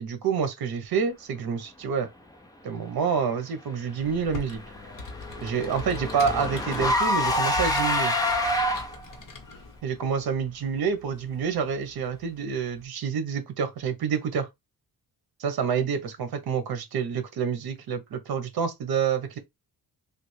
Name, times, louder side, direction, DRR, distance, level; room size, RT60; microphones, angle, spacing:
voice 1, 0.0-2.1 2.6-4.6 5.4-8.2 9.8-14.5 15.4-19.4, right 6 dB, 70° right, 0.8 m, -28 dB
Computer keyboard, 4.0-9.8, left 4 dB, 55° left, 1.1 m, -41 dB
Car / Engine, 4.1-9.2, left 1 dB, 10° left, 0.5 m, -27 dB
3.3 x 2.4 x 3.1 m
wide cardioid pair, 180°, 38 cm